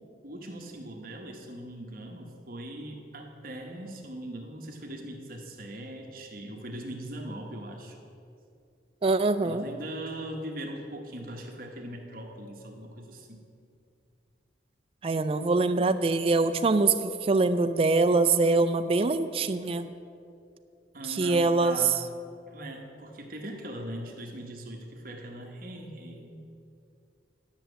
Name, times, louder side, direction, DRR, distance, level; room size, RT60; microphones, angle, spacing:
voice 1, 0.2-8.0 9.4-13.4 20.9-22.0 22.5-26.4, right 1 dB, 50° right, 2 dB, 1.2 m, -40 dB
voice 2, 9.0-9.7 15.0-19.9 21.1-21.8, right 3 dB, 30° right, 9 dB, 0.3 m, -24 dB
10.5 x 6.3 x 7.9 m, 2.5 s
head